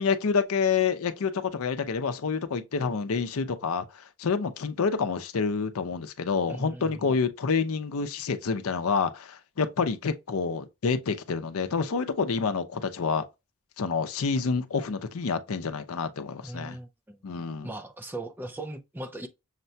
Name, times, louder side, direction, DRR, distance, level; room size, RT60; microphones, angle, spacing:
voice 1, 0.0-13.3 13.8-16.8 17.2-17.7, left 5 dB, 80° left, 0.5 m, -28 dB
voice 2, 6.5-7.2 16.4-17.2 17.6-19.3, right 1 dB, 10° right, 0.3 m, -39 dB
6.5 x 2.2 x 2.7 m
head